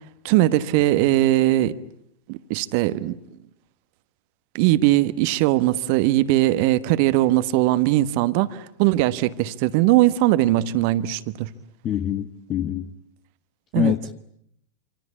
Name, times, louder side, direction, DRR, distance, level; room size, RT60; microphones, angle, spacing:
voice 1, 0.2-1.7 2.3-3.2 4.5-11.5 13.7-13.9, right 16 dB, 45° right, 1.2 m, -20 dB
voice 2, 11.8-12.9 13.7-14.1, left 9 dB, 30° left, 1.2 m, -25 dB
27.0 x 26.0 x 8.5 m
figure-of-eight pair, 90°, 0 cm